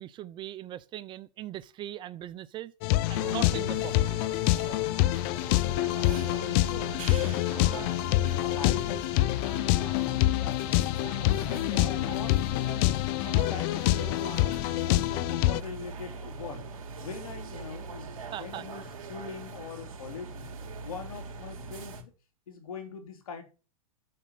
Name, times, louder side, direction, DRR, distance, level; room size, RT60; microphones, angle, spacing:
voice 1, 0.0-2.7 3.1-4.2 18.3-18.6, right 13 dB, 25° right, 0.7 m, -40 dB
sound 1, 2.8-15.6, left 17 dB, 45° left, 0.6 m, -26 dB
sound 2, 3.1-22.0, right 4 dB, 75° right, 3.2 m, -41 dB
voice 2, 6.1-14.5 14.8-16.7 17.0-18.1 18.4-20.5 20.8-22.1 22.5-23.4, left 5 dB, 75° left, 3.6 m, -42 dB
7.7 x 7.3 x 8.5 m
hypercardioid pair, 125°, 18 cm